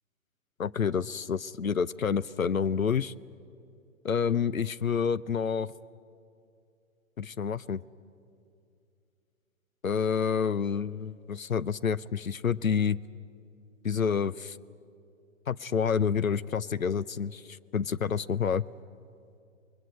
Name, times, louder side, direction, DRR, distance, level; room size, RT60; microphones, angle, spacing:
voice 1, 0.6-3.1 4.0-5.7 7.2-7.8 9.8-13.0 13.8-14.6 15.5-18.6, left 6 dB, 85° left, 17 dB, 0.6 m, -28 dB
25.0 x 21.5 x 8.9 m, 2.5 s
figure-of-eight pair, 120°, 40 cm